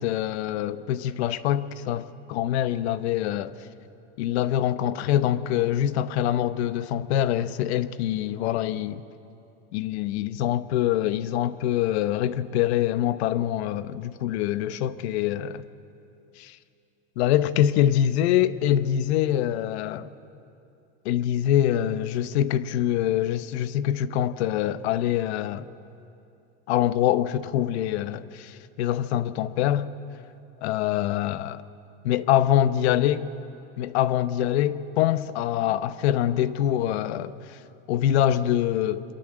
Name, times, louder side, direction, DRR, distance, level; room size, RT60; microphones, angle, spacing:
voice 1, 0.0-3.5 4.2-9.0 9.7-15.6 17.2-20.1 21.0-25.7 26.7-29.9 30.6-31.6 32.0-33.3 33.8-37.6 37.9-39.0, left 11 dB, 65° left, 1.0 m, -24 dB
28.0 x 23.5 x 7.6 m
supercardioid pair, 170°, 34 cm